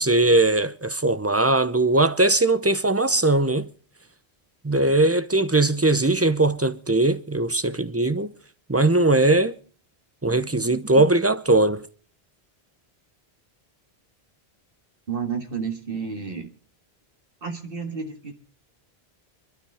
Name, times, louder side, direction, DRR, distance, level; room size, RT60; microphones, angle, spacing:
voice 1, 0.0-3.7 4.6-8.3 8.7-9.6 10.2-11.9, right 2 dB, 15° right, 0.6 m, -20 dB
voice 2, 15.1-16.5 17.4-18.3, right 6 dB, 60° right, 2.1 m, -31 dB
26.5 x 12.5 x 3.5 m
omnidirectional pair, 1.1 m